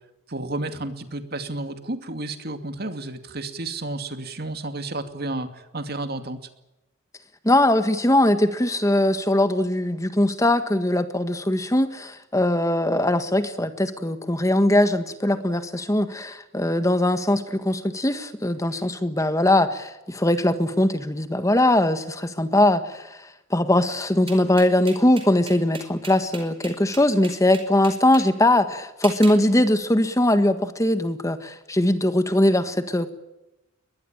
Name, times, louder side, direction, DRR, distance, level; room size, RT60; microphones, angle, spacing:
voice 1, 0.3-6.4, right 2 dB, 50° right, 8 dB, 2.5 m, -31 dB
voice 2, 7.4-23.2 23.5-33.1, left 1 dB, 15° left, 10 dB, 1.6 m, -21 dB
sound 1, 24.3-28.3 29.0-29.4, right 4 dB, 25° right, 5.0 m, -38 dB
22.5 x 20.5 x 8.8 m, 0.94 s
head